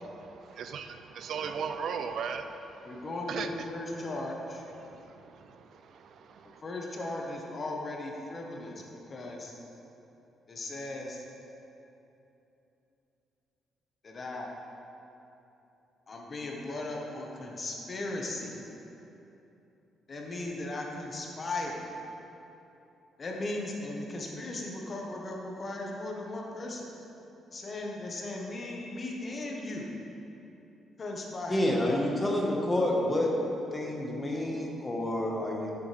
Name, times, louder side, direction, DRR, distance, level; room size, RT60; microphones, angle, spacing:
voice 1, 0.2-3.5 4.8-6.6, right 6 dB, 65° right, 8 dB, 0.5 m, -38 dB
voice 2, 2.8-4.6 6.6-9.5 10.5-11.2 14.0-14.5 16.1-18.6 20.1-21.8 23.2-26.9 27.5-29.9 31.0-31.6, left 2 dB, 40° left, 0 dB, 1.4 m, -37 dB
voice 3, 31.5-33.3 33.7-35.7, left 1 dB, 20° left, -1 dB, 1.6 m, -28 dB
11.5 x 7.1 x 3.5 m, 3.0 s
cardioid pair, 90°, 0 cm